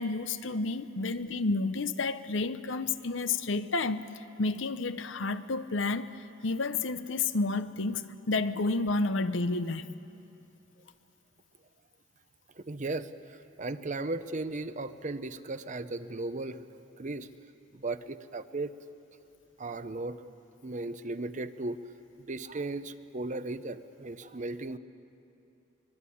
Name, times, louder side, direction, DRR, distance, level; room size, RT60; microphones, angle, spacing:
voice 1, 0.0-4.0 4.4-6.1 6.4-9.9, left 3 dB, 65° left, 0.8 m, -30 dB
voice 2, 12.7-16.6 17.0-17.3 17.7-18.7 19.6-20.2 20.6-21.8 22.3-24.8, right 2 dB, 40° right, 0.8 m, -36 dB
24.0 x 22.0 x 8.6 m
head